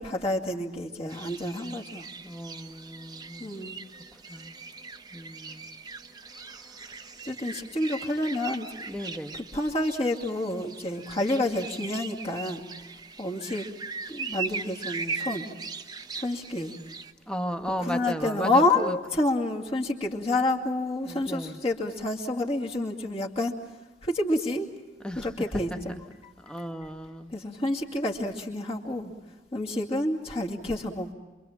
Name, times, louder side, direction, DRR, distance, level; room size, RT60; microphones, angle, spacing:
voice 1, 0.0-2.0 3.4-3.8 7.2-8.7 9.5-12.7 13.2-13.7 14.1-15.5 16.2-16.7 17.8-23.5 24.0-24.7 25.2-26.9 27.3-29.1 29.5-31.1, left 1 dB, 35° left, 0 dB, 2.4 m, -29 dB
sound 1, 1.1-17.1, right 4 dB, 25° right, 0.9 m, -40 dB
voice 2, 2.2-3.5 4.3-4.5 5.1-5.8 8.9-9.5 17.3-19.0 21.0-21.6 25.0-25.3 26.4-27.3, equal, 5° left, 6 dB, 1.2 m, -35 dB
27.5 x 24.0 x 7.4 m, 1.2 s
head